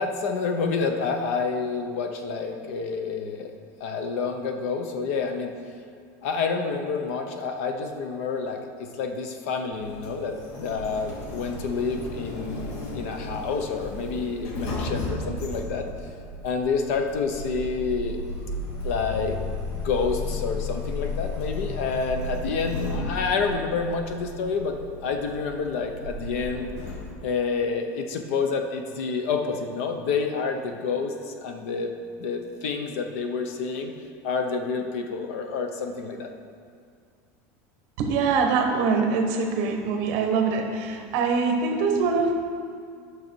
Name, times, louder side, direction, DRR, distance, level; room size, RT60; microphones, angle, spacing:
voice 1, 0.0-3.5 3.8-5.5 6.2-15.8 16.4-18.2 18.8-19.4 19.7-24.8 25.0-26.7 27.2-31.9 32.2-33.9 34.2-36.3, left 5 dB, 65° left, 5 dB, 0.9 m, -28 dB
Sliding door, 9.7-27.1, left 2 dB, 45° left, 1.2 m, -34 dB
voice 2, 38.0-42.3, right 4 dB, 45° right, 3 dB, 1.0 m, -23 dB
9.8 x 6.4 x 4.6 m, 2.2 s
supercardioid pair, 175°, 8 cm